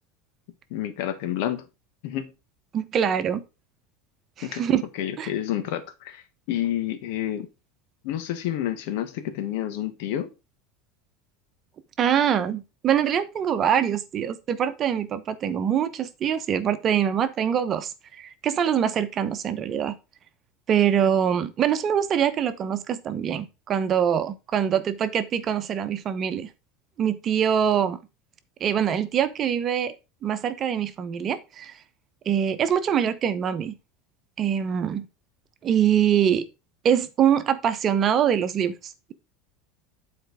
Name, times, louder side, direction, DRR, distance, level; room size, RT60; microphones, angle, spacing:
voice 1, 0.7-1.7 2.0-2.3 4.4-4.6 4.9-7.5 8.0-10.3, left 11 dB, 70° left, 1.3 m, -29 dB
voice 2, 2.7-3.4 4.4-4.8 5.2-5.3 12.0-20.0 20.7-26.5 27.0-28.0 28.6-29.9 30.2-31.7 32.3-33.8 34.4-35.1 35.6-36.4 36.8-39.1, right 8 dB, 40° right, 1.0 m, -24 dB
8.0 x 4.4 x 4.9 m
hypercardioid pair, 95°, 0 cm